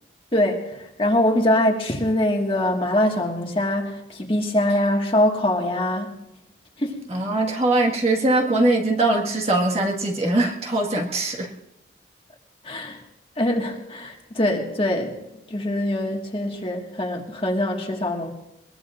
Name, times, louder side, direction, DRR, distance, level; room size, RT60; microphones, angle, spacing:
voice 1, 0.3-6.1 6.8-7.0 12.6-13.0 13.4-15.2 15.5-18.3, left 1 dB, 30° left, 1 dB, 1.8 m, -23 dB
voice 2, 7.1-11.5, right 2 dB, 35° right, 0 dB, 1.8 m, -21 dB
22.5 x 21.5 x 2.6 m, 0.90 s
head